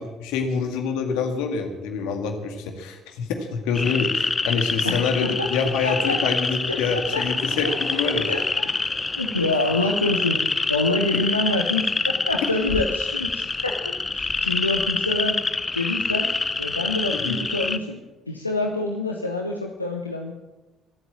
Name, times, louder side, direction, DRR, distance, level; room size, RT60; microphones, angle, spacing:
voice 1, 0.0-8.3 17.1-17.4, left 5 dB, 65° left, 5 dB, 2.1 m, -26 dB
sound 1, 3.8-17.8, left 3 dB, 25° left, 0.9 m, -26 dB
voice 2, 4.8-5.5 5.8-6.2 6.7-7.2 7.6-7.7 8.3-8.7 9.2-15.3 15.7-16.3 16.6-18.0 18.3-20.3, left 2 dB, 90° left, 1 dB, 0.8 m, -26 dB
sound 2, 7.2-11.1, right 2 dB, 30° right, 3.1 m, -45 dB
23.0 x 8.0 x 7.4 m, 1.1 s
figure-of-eight pair, 50°, 0 cm